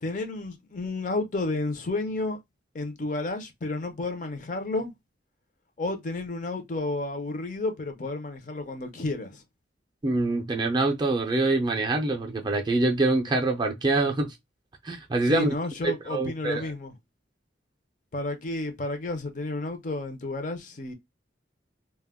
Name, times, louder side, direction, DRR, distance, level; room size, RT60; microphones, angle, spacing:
voice 1, 0.0-2.4 2.7-4.9 5.8-9.4 15.2-16.9 18.1-20.9, left 2 dB, 45° left, 0.5 m, -31 dB
voice 2, 10.0-14.3 14.8-15.5 15.8-16.7, right 2 dB, 25° right, 0.4 m, -25 dB
2.2 x 2.1 x 3.4 m
head